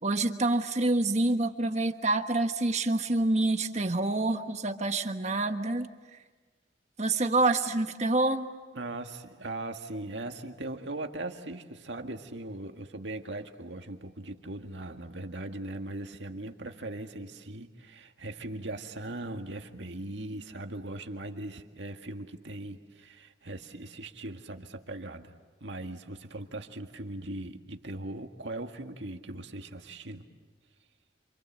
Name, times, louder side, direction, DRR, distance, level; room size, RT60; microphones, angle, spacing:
voice 1, 0.0-5.9 7.0-8.5, right 2 dB, 40° right, 7 dB, 1.4 m, -27 dB
voice 2, 8.7-25.4 25.6-30.2, right 2 dB, 80° right, 5 dB, 1.9 m, -39 dB
28.5 x 27.0 x 7.5 m, 1.3 s
head